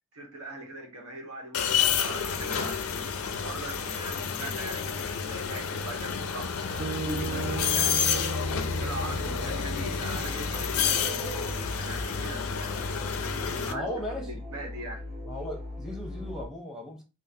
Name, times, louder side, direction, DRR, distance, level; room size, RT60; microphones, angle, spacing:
voice 1, 0.1-8.3 8.7-11.3 11.8-12.7 13.6-13.9 14.2-15.0, right 1 dB, 85° right, 1.1 m, -41 dB
sound 1, 1.5-13.7, left 7 dB, 75° left, 0.4 m, -30 dB
sound 2, 6.8-11.2, right 7 dB, 55° right, 0.3 m, -38 dB
sound 3, 8.4-16.5, left 1 dB, 30° right, 1.2 m, -39 dB
voice 2, 13.6-14.3 15.3-17.0, left 1 dB, 5° right, 0.7 m, -37 dB
3.7 x 2.0 x 2.6 m
head